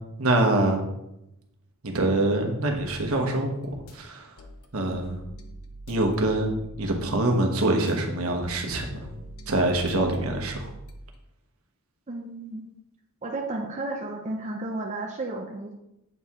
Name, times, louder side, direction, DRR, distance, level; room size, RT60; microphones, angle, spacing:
voice 1, 0.2-0.8 1.8-3.5 3.9-4.3 4.7-5.2 5.9-9.1 9.5-10.7, right 2 dB, 70° right, 3 dB, 1.1 m, -25 dB
sound 1, 3.6-4.0 4.4-7.1 7.6-8.0 8.4-11.2, right 2 dB, 85° left, 0.8 m, -44 dB
voice 2, 12.1-12.6 13.2-15.7, right 2 dB, 30° right, 1 dB, 0.6 m, -33 dB
8.0 x 4.6 x 3.6 m, 0.85 s
head